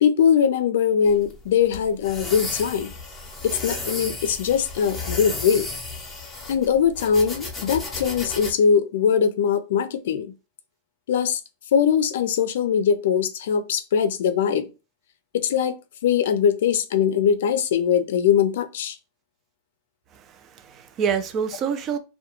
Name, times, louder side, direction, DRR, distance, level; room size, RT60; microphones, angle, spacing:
voice 1, 0.0-2.9 3.4-5.7 6.5-10.3 11.1-11.4 11.7-14.7 15.3-15.7 16.0-18.9, left 7 dB, 80° left, 0.4 m, -21 dB
sound 1, 1.1-8.5, left 3 dB, 10° left, 0.6 m, -34 dB
voice 2, 20.1-22.0, right 7 dB, 30° right, 0.4 m, -27 dB
2.4 x 2.2 x 2.8 m
supercardioid pair, 140°, 0 cm